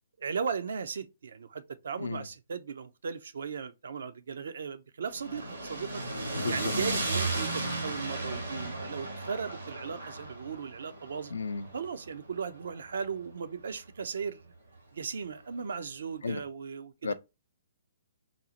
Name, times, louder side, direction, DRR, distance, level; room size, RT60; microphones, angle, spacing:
voice 1, 0.2-6.0 6.4-11.3 11.7-14.5 14.9-17.1, right 6 dB, 70° right, 0.4 m, -37 dB
sound 1, 5.1-13.3, right 2 dB, 85° right, 1.3 m, -35 dB
voice 2, 6.4-6.7 11.3-11.7 16.2-16.4 17.0-17.1, left 4 dB, 80° left, 0.4 m, -33 dB
4.0 x 2.0 x 2.8 m
hypercardioid pair, 135°, 0 cm